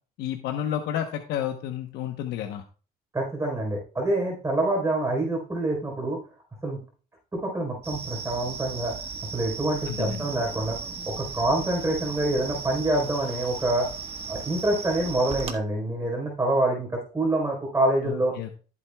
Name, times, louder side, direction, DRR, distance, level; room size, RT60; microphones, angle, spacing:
voice 1, 0.2-2.6 9.9-10.2 18.0-18.6, left 10 dB, 85° left, 5 dB, 0.9 m, -31 dB
voice 2, 3.1-6.2 6.6-6.8 7.3-8.9 9.3-10.8 11.1-13.9 14.3-18.3, right 1 dB, 15° right, -1 dB, 4.0 m, -26 dB
sound 1, 7.8-15.5, right 5 dB, 35° right, 1.4 m, -36 dB
14.0 x 8.1 x 2.3 m, 0.37 s
cardioid pair, 110°, 17 cm